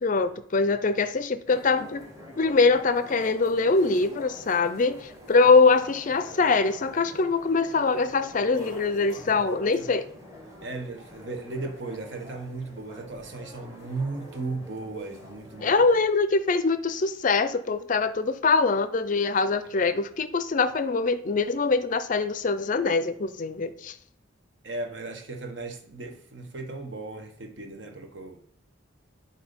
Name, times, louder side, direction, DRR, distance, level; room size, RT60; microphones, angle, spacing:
voice 1, 0.0-2.0 2.4-10.1 15.6-24.0, left 4 dB, 40° left, 12 dB, 0.4 m, -23 dB
sound 1, 1.5-16.1, equal, 15° right, 1.2 m, -47 dB
voice 2, 9.0-9.4 9.7-10.0 10.6-15.7 24.6-28.4, right 3 dB, 60° right, 4 dB, 1.0 m, -36 dB
7.9 x 2.7 x 5.1 m, 0.62 s
head